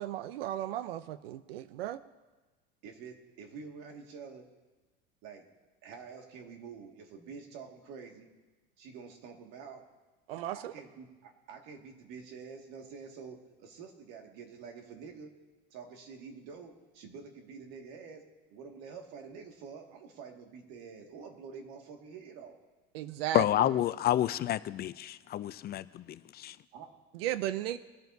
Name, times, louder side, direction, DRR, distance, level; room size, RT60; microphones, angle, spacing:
voice 1, 0.0-2.0 10.3-10.7 22.9-23.7 27.1-27.8, right 12 dB, 85° right, 0.6 m, -35 dB
voice 2, 2.8-4.5 5.2-8.3 8.8-9.9 10.5-15.4 15.7-22.6 26.7-27.0, right 5 dB, 65° right, 2.1 m, -48 dB
voice 3, 23.3-26.6, left 12 dB, 35° left, 0.4 m, -29 dB
21.5 x 9.1 x 2.7 m
supercardioid pair, 105°, 29 cm